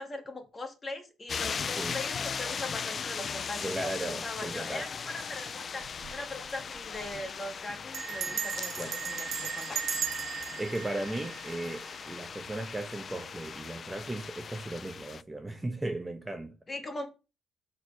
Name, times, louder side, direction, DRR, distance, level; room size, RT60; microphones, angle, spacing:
voice 1, 0.0-9.8 16.7-17.1, left 2 dB, 25° left, 2.2 m, -40 dB
sound 1, 1.3-15.2, left 6 dB, 40° left, 0.4 m, -38 dB
voice 2, 3.6-4.8 8.8-8.9 10.6-16.5, right 1 dB, 10° right, 1.2 m, -36 dB
Bell, 5.8-6.2 6.5-6.6 6.8-7.2 7.9-12.0, right 7 dB, 55° right, 1.2 m, -36 dB
6.4 x 4.7 x 6.2 m
cardioid pair, 85°, 0 cm